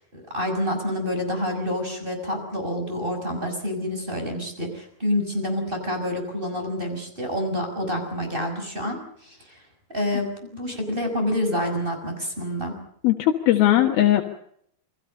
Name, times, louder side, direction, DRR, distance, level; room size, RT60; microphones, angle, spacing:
voice 1, 0.1-9.6 9.9-12.8, left 1 dB, 15° right, 4 dB, 6.0 m, -28 dB
voice 2, 13.0-14.2, left 13 dB, 80° left, 2 dB, 3.3 m, -18 dB
29.0 x 22.0 x 5.5 m, 0.68 s
omnidirectional pair, 4.3 m